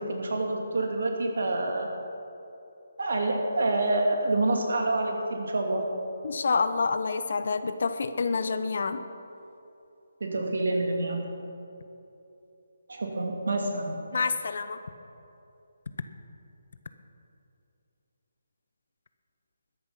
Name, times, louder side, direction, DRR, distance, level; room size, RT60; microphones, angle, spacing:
voice 1, 0.0-1.9 3.0-5.9 10.2-11.3 12.9-13.9, right 2 dB, 75° right, 2 dB, 2.6 m, -27 dB
voice 2, 6.2-9.0 14.1-14.8, left 4 dB, 65° left, 11 dB, 0.8 m, -28 dB
13.5 x 9.9 x 5.8 m, 2.8 s
hypercardioid pair, 160°, 0 cm